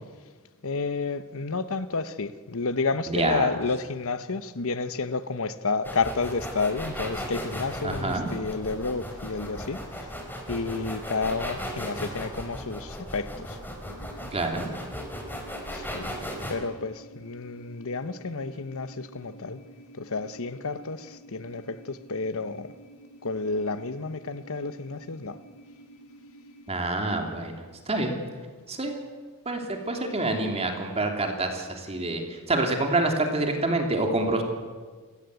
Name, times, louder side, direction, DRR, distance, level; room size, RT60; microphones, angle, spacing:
voice 1, 0.6-10.1 10.5-13.6 15.7-16.1 16.5-19.6 19.9-22.7 23.2-25.4, left 4 dB, 65° left, 1.1 m, -30 dB
voice 2, 3.1-3.5 7.8-8.3 14.3-14.7 26.7-28.1 28.7-29.0 29.4-34.4, right 2 dB, 30° right, 3.1 m, -27 dB
sound 1, 5.8-16.5, equal, 10° left, 4.2 m, -36 dB
sound 2, 13.9-27.4, right 1 dB, 85° left, 7.1 m, -51 dB
29.0 x 16.0 x 8.3 m
head